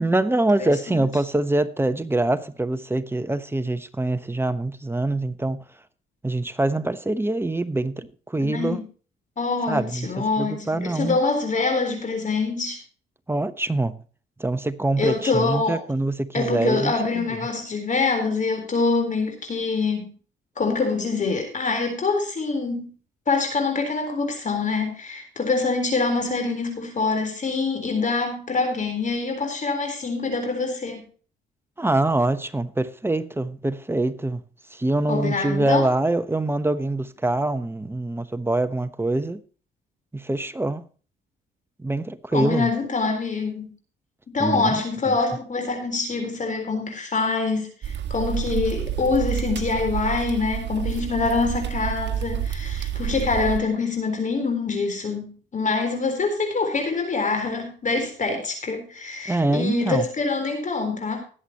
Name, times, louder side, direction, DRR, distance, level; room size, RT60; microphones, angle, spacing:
voice 1, 0.0-5.6 6.2-8.8 9.7-11.2 13.3-14.0 14.4-17.3 31.8-34.4 34.7-39.4 40.1-40.8 41.8-42.7 44.4-44.8 45.1-45.2 59.3-60.0, right 2 dB, 10° right, 1.0 m, -24 dB
voice 2, 0.6-1.0 8.4-8.8 9.4-12.8 15.0-15.8 16.3-20.1 20.6-22.9 23.3-31.0 35.1-35.9 42.3-43.7 44.3-61.2, left 4 dB, 40° left, 3.9 m, -25 dB
sound 1, 47.8-53.6, right 9 dB, 60° right, 1.6 m, -29 dB
20.0 x 8.1 x 2.9 m
cardioid pair, 90°, 20 cm